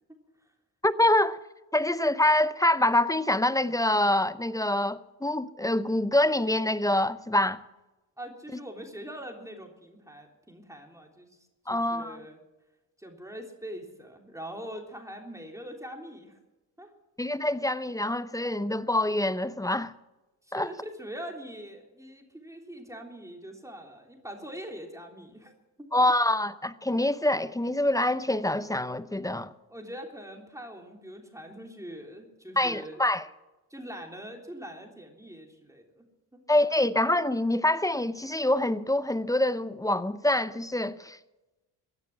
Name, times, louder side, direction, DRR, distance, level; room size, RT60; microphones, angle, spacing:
voice 1, 0.8-1.4 1.7-7.6 11.7-12.2 17.2-19.9 20.5-20.7 25.9-29.5 32.6-33.2 36.5-41.2, left 1 dB, 10° left, 0.7 m, -25 dB
voice 2, 8.2-11.4 11.7-12.4 13.0-16.4 16.8-16.9 20.4-25.5 25.8-25.9 29.7-33.0 33.7-36.0 36.3-36.4, equal, 5° right, 3.3 m, -43 dB
16.0 x 10.5 x 7.2 m
supercardioid pair, 65°, 43 cm